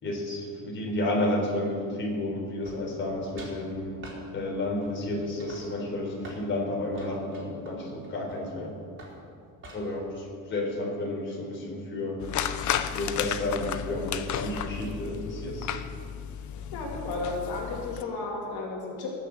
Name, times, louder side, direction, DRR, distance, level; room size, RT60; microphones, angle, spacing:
voice 1, 0.0-4.0 4.3-8.7 9.7-12.2 12.9-15.7, left 1 dB, 30° left, -2 dB, 3.9 m, -31 dB
sound 1, 2.6-3.1 3.4-3.6 4.0-4.2 4.8-5.1 5.4-6.5 6.9-8.6 9.0-9.2 9.6-10.0, right 2 dB, 30° right, 3.8 m, -46 dB
sound 2, 12.2-18.0, left 9 dB, 55° left, 0.8 m, -33 dB
voice 2, 16.7-19.1, left 3 dB, 80° left, -1 dB, 2.6 m, -33 dB
19.5 x 6.8 x 7.8 m, 2.3 s
cardioid pair, 155°, 36 cm